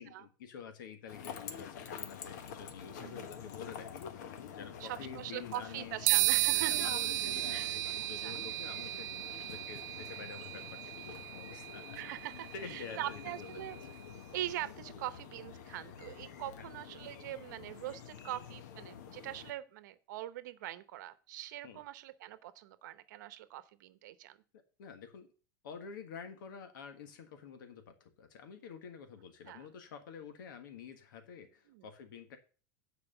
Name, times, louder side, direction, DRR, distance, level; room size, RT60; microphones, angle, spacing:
voice 1, 0.0-4.3 4.5-7.6 7.9-9.1 9.4-12.0 12.5-13.6 21.6-21.8 24.8-25.3 25.6-32.4, left 6 dB, 90° left, 7 dB, 1.5 m, -49 dB
sound 1, 1.1-19.5, left 8 dB, 60° left, 1.1 m, -47 dB
voice 2, 4.8-6.9 7.5-7.8 8.2-8.4 12.0-13.8 14.3-24.4 29.5-29.7 31.7-31.9, right 14 dB, 65° right, 13 dB, 0.9 m, -42 dB
sound 2, 6.1-13.7, right 21 dB, 40° right, 0.3 m, -34 dB
9.1 x 4.7 x 6.6 m, 0.38 s
supercardioid pair, 175°, 11 cm